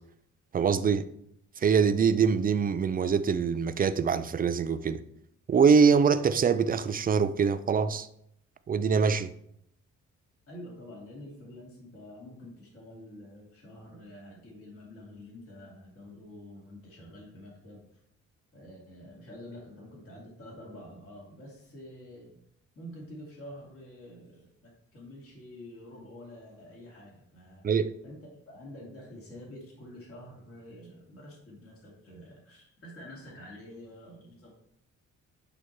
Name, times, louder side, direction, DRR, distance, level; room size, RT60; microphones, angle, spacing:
voice 1, 0.5-1.1 1.6-5.0 5.5-8.1 8.7-9.3 27.6-27.9, right 6 dB, 30° right, 0.4 m, -24 dB
voice 2, 10.5-18.0 18.5-22.4 22.8-27.7 28.0-28.2 28.5-34.5, left 1 dB, 50° left, 2.3 m, -47 dB
8.3 x 2.9 x 4.5 m
cardioid pair, 90°, 30 cm